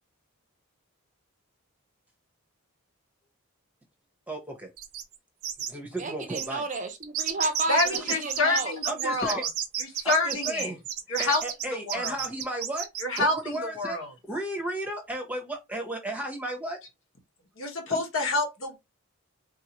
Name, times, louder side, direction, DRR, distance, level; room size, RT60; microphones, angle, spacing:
voice 1, 4.3-4.7 5.7-6.6 7.9-8.0 8.9-9.5 10.0-10.8 11.2-12.9 13.2-14.0 14.3-16.8 17.9-18.0, right 1 dB, 5° right, 0.9 m, -34 dB
sound 1, 4.8-5.2 5.4-5.7 6.0-6.1 6.3-13.2, right 9 dB, 85° right, 0.6 m, -31 dB
voice 2, 6.0-8.8, right 2 dB, 35° right, 0.6 m, -31 dB
voice 3, 7.7-9.4 10.0-10.7 11.1-11.4 11.9-12.2 13.0-14.1 17.6-18.8, left 2 dB, 65° left, 1.1 m, -27 dB
3.9 x 2.6 x 2.9 m
head